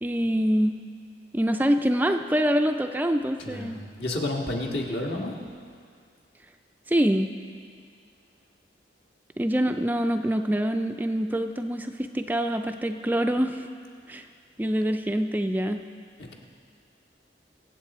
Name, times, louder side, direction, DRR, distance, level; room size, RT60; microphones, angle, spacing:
voice 1, 0.0-0.8 1.3-3.8 6.9-7.3 9.4-13.7 14.1-14.3 14.6-15.8, equal, 10° right, 6 dB, 0.3 m, -25 dB
voice 2, 3.4-5.4, left 1 dB, 65° left, -1 dB, 1.7 m, -30 dB
24.0 x 8.1 x 4.2 m, 2.2 s
head